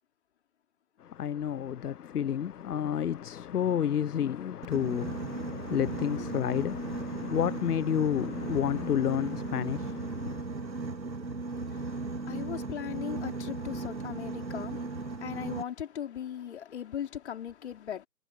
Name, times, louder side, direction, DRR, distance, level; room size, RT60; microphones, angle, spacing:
voice 1, 1.0-10.4, left 9 dB, 65° left, 0.6 m, -30 dB
Boat Water vehicle, 4.6-15.6, right 3 dB, 85° right, 3.0 m, -36 dB
voice 2, 11.4-18.1, left 9 dB, 40° left, 4.5 m, -39 dB
figure-of-eight pair, 145°, 50 cm